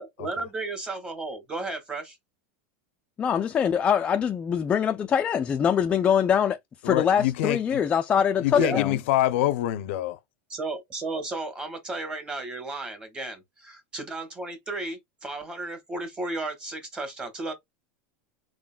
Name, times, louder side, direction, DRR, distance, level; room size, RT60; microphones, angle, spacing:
voice 1, 0.0-2.2 8.5-8.8 10.5-17.5, right 2 dB, 15° right, 1.4 m, -34 dB
voice 2, 3.2-6.6 6.8-9.0, left 8 dB, 15° left, 0.3 m, -23 dB
voice 3, 6.8-7.8 8.4-10.2, left 13 dB, 65° left, 0.5 m, -25 dB
4.5 x 3.8 x 2.2 m
supercardioid pair, 160°, 7 cm